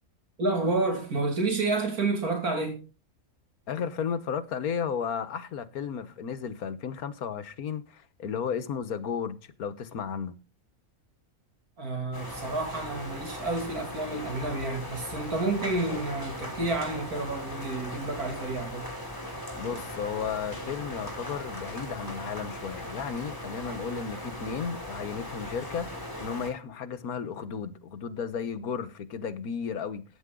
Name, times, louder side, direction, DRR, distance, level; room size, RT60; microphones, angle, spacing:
voice 1, 0.4-2.8 11.8-18.9, right 3 dB, 85° right, 3.0 m, -30 dB
voice 2, 3.7-10.3 19.6-30.0, left 7 dB, 80° left, 1.6 m, -34 dB
sound 1, 12.1-26.5, left 1 dB, 15° left, 3.3 m, -39 dB
14.0 x 9.4 x 3.8 m
omnidirectional pair, 1.5 m